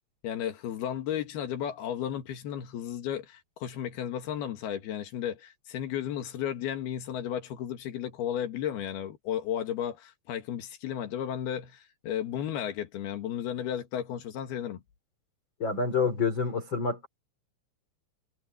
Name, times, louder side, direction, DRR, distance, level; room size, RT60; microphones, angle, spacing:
voice 1, 0.2-14.8, left 10 dB, 60° left, 3.6 m, -34 dB
voice 2, 15.6-17.1, left 5 dB, 30° left, 3.5 m, -28 dB
omnidirectional pair, 5.4 m